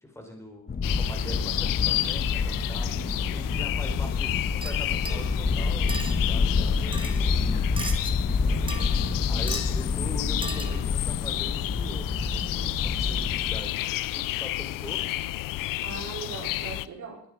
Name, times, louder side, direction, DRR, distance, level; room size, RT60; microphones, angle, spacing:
voice 1, 0.0-7.7 8.4-9.0 9.3-13.8 14.1-15.2, left 1 dB, 10° left, 2 dB, 4.1 m, -42 dB
sound 1, 0.7-13.6, left 4 dB, 25° left, 1.5 m, -28 dB
sound 2, 0.8-16.9, left 16 dB, 75° left, 0.6 m, -31 dB
sound 3, 4.6-5.3 5.9-6.1 6.9-7.2 7.8-8.1 8.7-9.1 9.5-9.7 10.4-10.8, right 2 dB, 15° right, 2.1 m, -37 dB
voice 2, 5.0-5.3 10.4-10.8 15.8-17.2, right 5 dB, 60° right, -2 dB, 4.7 m, -40 dB
21.5 x 9.4 x 4.9 m, 0.64 s
cardioid pair, 130°, 33 cm